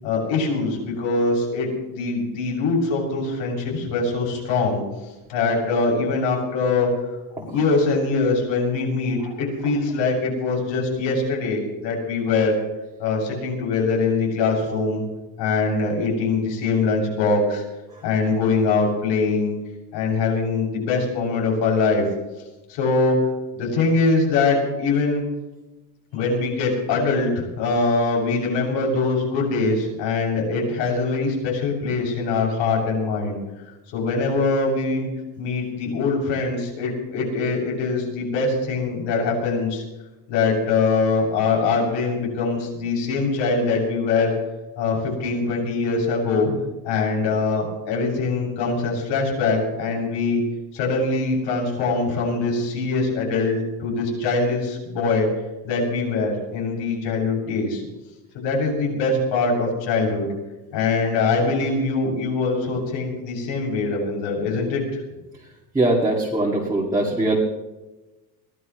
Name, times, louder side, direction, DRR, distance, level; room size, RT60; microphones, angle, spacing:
voice 1, 0.0-4.8 5.3-6.9 7.4-12.5 13.0-15.0 15.4-17.6 18.0-19.5 19.9-22.0 22.7-23.2 23.5-25.2 26.1-33.4 33.9-35.1 35.4-39.8 40.3-44.3 44.8-46.5 46.8-50.4 50.7-55.3 55.6-57.8 58.3-60.3 60.7-64.8, left 3 dB, 70° left, -1 dB, 7.5 m, -23 dB
voice 2, 65.7-67.4, right 2 dB, 10° right, -4 dB, 2.2 m, -21 dB
23.0 x 17.5 x 3.2 m, 1.1 s
cardioid pair, 165°, 44 cm